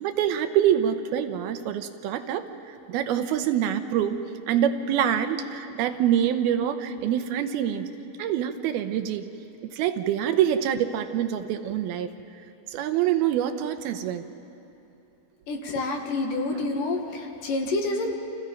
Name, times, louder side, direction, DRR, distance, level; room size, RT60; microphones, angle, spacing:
voice 1, 0.0-2.4 2.9-7.9 8.2-9.3 9.7-12.1 12.7-14.2 16.5-16.7, right 10 dB, 85° right, 8 dB, 2.9 m, -25 dB
voice 2, 15.5-18.1, left 2 dB, 65° left, 3 dB, 3.2 m, -28 dB
29.5 x 27.0 x 5.3 m, 2.8 s
omnidirectional pair, 4.3 m